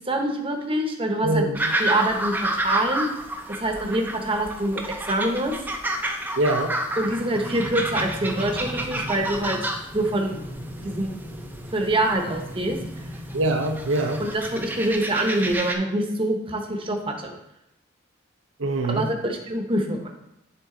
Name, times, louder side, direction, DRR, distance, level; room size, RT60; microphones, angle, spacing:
voice 1, 0.1-1.4 1.8-3.1 3.6-5.5 7.0-10.4 10.8-11.1 11.7-12.8 14.2-17.4 18.9-20.1, right 1 dB, 25° right, 2 dB, 0.8 m, -25 dB
voice 2, 1.2-1.7 6.4-6.8 13.3-14.2 18.6-19.1, right 2 dB, 75° right, 4 dB, 0.6 m, -24 dB
sound 1, 1.5-15.7, right 1 dB, 10° right, 0.5 m, -31 dB
sound 2, 6.8-14.8, equal, 30° left, 1.1 m, -38 dB
9.6 x 3.7 x 3.8 m, 0.85 s
head